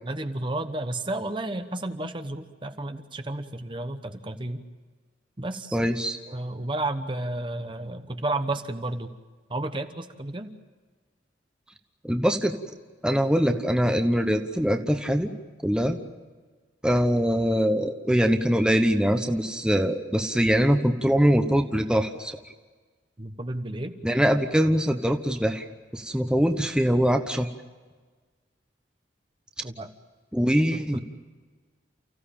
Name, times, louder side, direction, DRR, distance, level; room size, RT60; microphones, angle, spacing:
voice 1, 0.0-4.6 5.4-5.9 6.3-9.1 9.5-10.5 23.2-23.9 29.6-29.9 30.7-31.0, right 2 dB, 25° right, 8 dB, 1.0 m, -32 dB
voice 2, 5.7-6.2 12.0-12.5 13.0-15.3 15.6-16.0 16.8-22.4 24.0-25.7 25.9-27.5 30.3-31.0, equal, 5° right, 5 dB, 1.0 m, -23 dB
29.5 x 15.5 x 8.7 m, 1.4 s
head